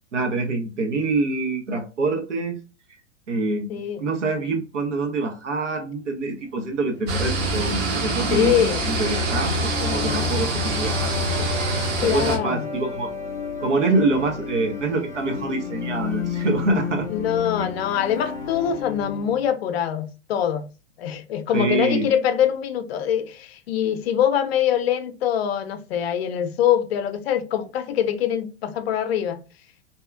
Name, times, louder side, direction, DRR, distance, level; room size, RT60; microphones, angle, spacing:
voice 1, 0.1-2.6 3.3-8.6 8.8-11.1 11.7-13.1 13.6-17.1 17.6-17.7 21.5-22.1, right 3 dB, 80° right, 0.8 m, -25 dB
voice 2, 3.7-4.0 8.3-8.8 12.0-12.6 17.1-20.6 21.0-29.4, left 9 dB, 55° left, 0.6 m, -23 dB
sound 1, 6.5-19.5, left 6 dB, 10° left, 0.3 m, -33 dB
sound 2, 7.1-12.4, right 1 dB, 30° right, 0.7 m, -25 dB
2.8 x 2.3 x 2.3 m
figure-of-eight pair, 100°, 36 cm